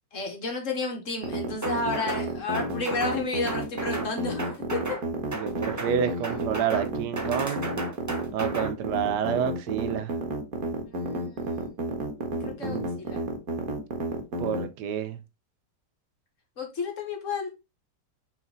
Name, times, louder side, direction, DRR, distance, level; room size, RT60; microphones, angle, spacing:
voice 1, 0.1-5.0 10.9-11.8 12.4-13.2 16.6-17.5, left 3 dB, 50° left, 1.8 m, -32 dB
sound 1, 1.2-14.6, right 2 dB, 60° right, 1.8 m, -31 dB
sound 2, 1.6-2.3 2.5-3.2 3.5-4.1 4.4-5.0 5.3-6.0 6.2-6.9 7.2-8.7, right 2 dB, 20° right, 0.4 m, -34 dB
voice 2, 5.3-7.7 8.3-10.1 12.6-12.9 14.4-15.2, right 8 dB, 80° right, 1.4 m, -29 dB
6.0 x 3.9 x 3.9 m
omnidirectional pair, 1.8 m